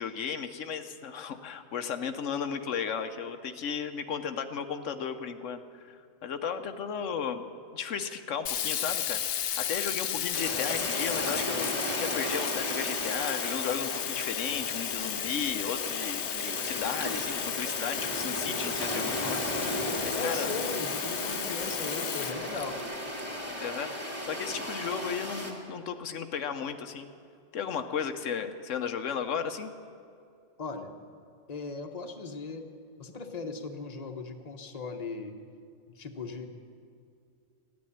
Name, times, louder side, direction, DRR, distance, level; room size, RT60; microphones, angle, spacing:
voice 1, 0.0-7.4 7.7-19.4 19.7-19.8 20.0-20.5 23.6-27.1 27.5-29.7, left 7 dB, 85° left, 8 dB, 1.2 m, -35 dB
Sink (filling or washing), 8.5-23.2, left 10 dB, 70° left, 0.9 m, -34 dB
sound 1, 10.3-25.5, equal, 10° right, 2.4 m, -35 dB
voice 2, 20.1-22.8 30.6-30.9 31.5-32.6 33.0-35.4 35.9-36.5, left 4 dB, 35° left, 4 dB, 1.1 m, -38 dB
14.5 x 9.6 x 10.0 m, 2.4 s
omnidirectional pair, 1.2 m